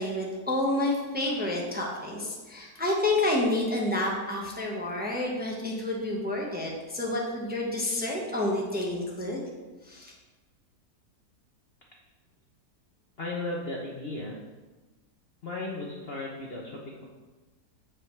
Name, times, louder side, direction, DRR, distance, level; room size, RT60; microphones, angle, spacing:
voice 1, 0.0-9.4 9.9-10.1, left 1 dB, 5° right, -2 dB, 1.0 m, -29 dB
voice 2, 13.2-14.4 15.4-17.0, left 2 dB, 45° left, -2 dB, 1.0 m, -35 dB
8.0 x 7.4 x 3.2 m, 1.2 s
omnidirectional pair, 1.7 m